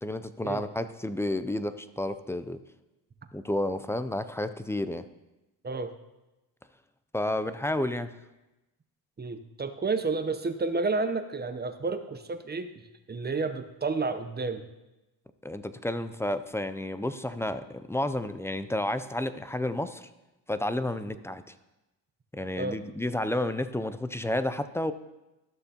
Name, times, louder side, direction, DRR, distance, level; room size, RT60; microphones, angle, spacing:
voice 1, 0.0-2.6 3.3-5.0 7.1-8.1 15.4-20.1 20.5-21.4 22.3-24.9, left 1 dB, 5° left, 12 dB, 0.3 m, -31 dB
voice 2, 9.2-14.6 21.1-21.2 22.6-22.8, right 3 dB, 25° right, 9 dB, 0.7 m, -31 dB
13.5 x 6.6 x 2.8 m, 1.0 s
cardioid pair, 85°, 42 cm